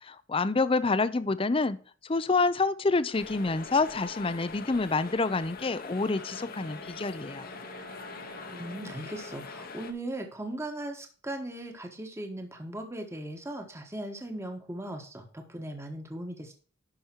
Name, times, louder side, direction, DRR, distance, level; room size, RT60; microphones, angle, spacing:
voice 1, 0.0-7.5, left 3 dB, 25° left, 0.5 m, -27 dB
sound 1, 3.1-9.9, left 4 dB, 45° left, 1.0 m, -43 dB
Wind instrument woodwind instrument, 5.9-9.8, right 3 dB, 60° right, 2.2 m, -51 dB
voice 2, 8.5-16.5, right 1 dB, 15° right, 1.2 m, -38 dB
11.5 x 5.2 x 4.5 m
head